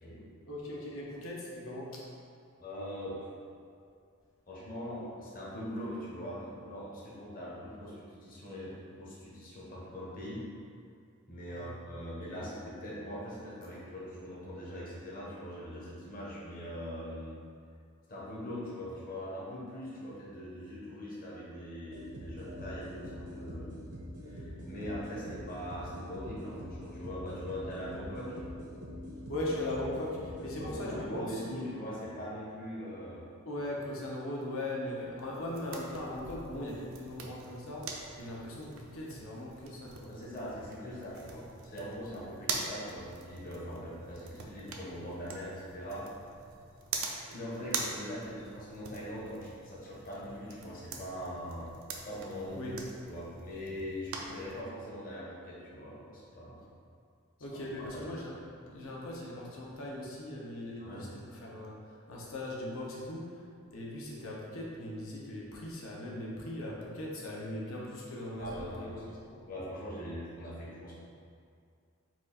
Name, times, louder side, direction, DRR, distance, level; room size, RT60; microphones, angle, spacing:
voice 1, 0.5-2.0 11.5-11.7 29.3-31.6 33.4-37.9 38.2-40.1 52.6-52.7 57.4-58.3 58.7-61.1 61.4-69.4, left 1 dB, 65° left, -4 dB, 0.9 m, -39 dB
voice 2, 2.6-3.2 4.5-10.5 11.3-17.4 18.1-23.7 24.2-28.4 30.4-33.2 40.1-46.1 47.3-51.7 52.0-52.7 53.0-56.6 57.8-58.1 60.8-61.1 68.4-69.0 69.5-70.9, equal, 40° left, -6 dB, 1.0 m, -41 dB
sound 1, 21.9-31.4, left 1 dB, 90° right, 0.9 m, -44 dB
sound 2, 35.3-54.6, right 4 dB, 65° right, 0.5 m, -44 dB
4.5 x 2.5 x 4.1 m, 2.3 s
head